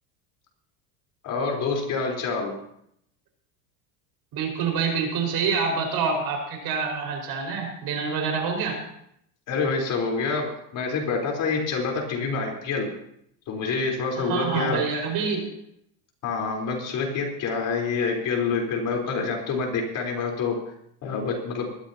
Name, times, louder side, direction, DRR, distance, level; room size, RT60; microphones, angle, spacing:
voice 1, 1.2-2.5 9.5-12.9 13.5-14.8 16.2-20.6 21.0-21.7, left 4 dB, 40° left, 0 dB, 4.1 m, -27 dB
voice 2, 4.3-8.8 14.2-15.5, right 5 dB, 50° right, 1 dB, 5.1 m, -26 dB
20.5 x 13.5 x 2.9 m, 0.73 s
supercardioid pair, 140°, 47 cm